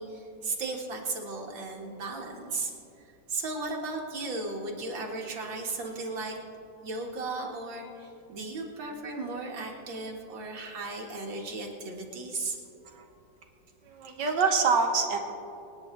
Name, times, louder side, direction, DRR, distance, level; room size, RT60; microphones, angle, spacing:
voice 1, 0.0-6.4 6.8-12.6, right 3 dB, 85° right, -1 dB, 2.5 m, -36 dB
voice 2, 13.9-15.2, right 5 dB, 70° right, 4 dB, 1.6 m, -25 dB
26.5 x 9.6 x 3.2 m, 2.9 s
omnidirectional pair, 2.0 m